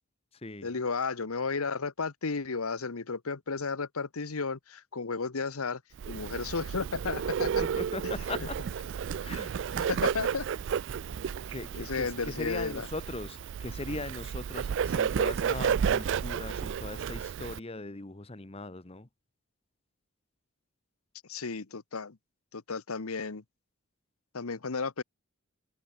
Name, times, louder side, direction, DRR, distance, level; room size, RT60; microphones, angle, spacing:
voice 1, 0.6-5.8 6.1-7.5 8.4-8.5 9.8-10.5 11.8-12.9 21.3-22.2 22.5-23.4 24.3-25.0, left 4 dB, 90° left, 1.1 m, -33 dB
Bird, 6.0-17.6, right 7 dB, 55° right, 0.3 m, -32 dB
voice 2, 7.6-8.6 9.2-9.7 11.5-19.1, left 2 dB, 25° left, 1.1 m, -40 dB
head